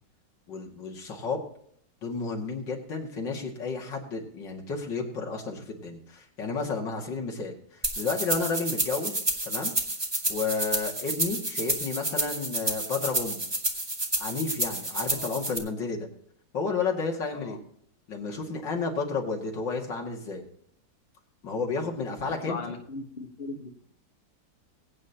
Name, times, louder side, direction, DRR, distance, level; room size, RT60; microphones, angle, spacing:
voice 1, 0.5-1.4 2.0-9.7 10.3-13.4 14.2-16.1 16.5-17.6 18.1-20.4 21.4-22.6, left 4 dB, 85° left, 0 dB, 2.9 m, -32 dB
sound 1, 7.8-15.6, right 1 dB, 15° right, 1.4 m, -30 dB
voice 2, 22.2-23.9, left 3 dB, 35° left, 4 dB, 1.6 m, -39 dB
22.0 x 9.1 x 2.9 m, 0.66 s
omnidirectional pair, 1.9 m